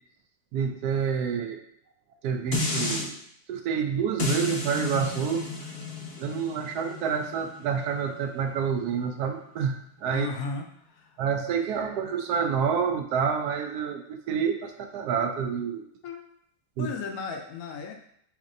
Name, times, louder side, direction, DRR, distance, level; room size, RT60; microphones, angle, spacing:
voice 1, 0.5-1.6 2.2-3.2 3.5-5.5 6.2-10.3 11.2-15.8 16.8-16.9, right 7 dB, 75° right, 5 dB, 1.1 m, -28 dB
sound 1, 2.5-3.1 4.2-9.3 9.8-9.9, left 3 dB, 50° left, 0.6 m, -33 dB
voice 2, 10.1-11.2 16.0-16.2 16.8-17.9, left 4 dB, 70° left, 3 dB, 0.9 m, -35 dB
7.2 x 2.7 x 2.6 m, 0.69 s
omnidirectional pair, 1.8 m